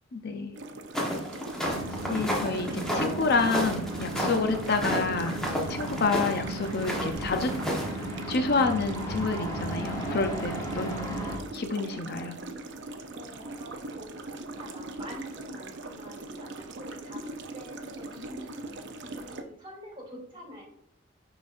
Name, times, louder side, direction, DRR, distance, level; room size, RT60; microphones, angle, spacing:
voice 1, 0.1-0.5 2.1-5.4 5.7-7.5 8.3-11.2 11.5-12.4, left 4 dB, 55° left, 6 dB, 0.6 m, -28 dB
sound 1, 0.5-19.4, right 2 dB, 65° right, 0.6 m, -41 dB
sound 2, 0.9-8.1, equal, 5° left, 1.2 m, -31 dB
sound 3, 1.6-11.4, right 1 dB, 20° left, 1.5 m, -36 dB
voice 2, 13.1-20.6, equal, 25° right, -3 dB, 2.6 m, -46 dB
10.5 x 4.0 x 2.6 m, 0.72 s
head